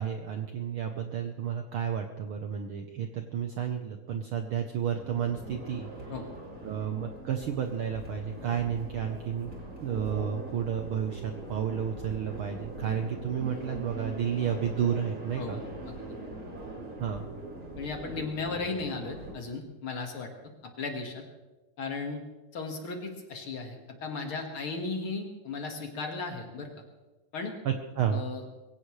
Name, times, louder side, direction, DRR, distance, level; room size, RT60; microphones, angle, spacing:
voice 1, 0.0-5.9 6.6-9.6 9.8-15.6 17.0-17.2 27.6-28.2, right 8 dB, 90° right, 5 dB, 1.1 m, -31 dB
sound 1, 4.9-19.3, right 1 dB, 25° right, 2.8 m, -42 dB
voice 2, 15.4-16.1 17.7-20.3 20.8-21.2 21.8-22.2 22.5-26.7 27.3-27.5 28.1-28.4, left 4 dB, 50° left, 3 dB, 2.3 m, -36 dB
22.5 x 16.5 x 3.2 m, 1.2 s
omnidirectional pair, 3.5 m